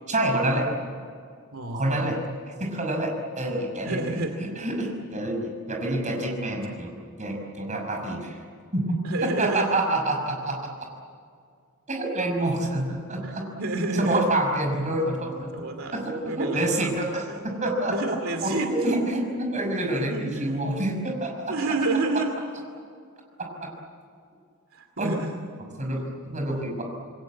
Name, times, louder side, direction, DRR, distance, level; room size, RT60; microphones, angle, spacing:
voice 1, 0.1-0.7 1.7-2.2 2.6-6.9 7.2-8.4 8.7-8.8 9.2-10.6 11.9-13.5 13.9-15.6 15.9-18.0 18.4-21.3 25.0-25.1 25.8-26.8, right 1 dB, 35° right, 1 dB, 5.9 m, -27 dB
voice 2, 1.5-2.2 3.8-4.4 9.0-9.7 13.2-13.3 13.6-14.2 15.3-16.0 16.2-16.9 17.3-17.4 17.8-19.0 20.1-20.5 21.5-22.3 24.7-25.4, right 2 dB, 70° right, 4 dB, 2.6 m, -29 dB
28.0 x 21.5 x 8.6 m, 2.3 s
head